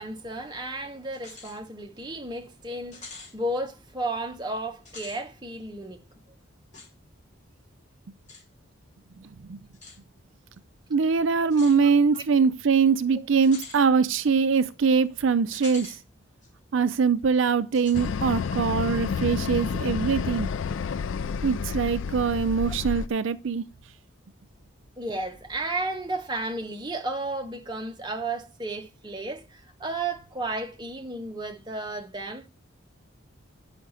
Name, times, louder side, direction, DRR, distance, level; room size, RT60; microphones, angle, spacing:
voice 1, 0.0-6.0 12.1-12.2 13.1-13.3 25.0-32.5, right 2 dB, 20° right, 0.9 m, -33 dB
sound 1, 1.1-1.6 2.0-2.1 2.9-3.3 4.8-5.2 6.7-6.9 8.3-8.4 9.7-10.0 11.5-11.8 13.4-13.8 15.5-16.0 16.4-16.5 17.7-18.1, left 4 dB, 35° left, 3.2 m, -44 dB
voice 2, 9.2-9.6 10.9-16.0 16.7-20.5 21.4-23.6, right 5 dB, 70° right, 0.5 m, -23 dB
sound 2, 17.9-23.1, left 5 dB, 70° left, 0.4 m, -30 dB
9.5 x 5.7 x 5.5 m
head